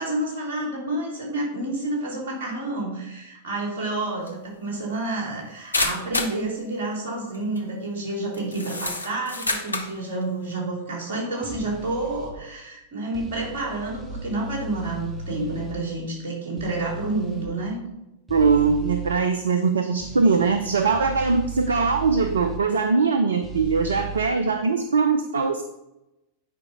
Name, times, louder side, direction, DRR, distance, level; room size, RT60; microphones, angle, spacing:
voice 1, 0.0-17.8, right 2 dB, 55° right, -2 dB, 3.5 m, -29 dB
sound 1, 4.3-4.4 5.7-6.4 7.3-7.6 8.3-10.0, left 2 dB, 80° left, 0.8 m, -27 dB
sound 2, 11.4-12.3 13.1-15.8 16.6-17.5 18.3-19.2 20.0-22.6 23.4-24.3, right 3 dB, 10° right, 1.8 m, -36 dB
voice 2, 18.3-25.6, right 4 dB, 70° right, 9 dB, 0.5 m, -21 dB
9.7 x 5.2 x 4.7 m, 0.93 s
figure-of-eight pair, 90°, 0 cm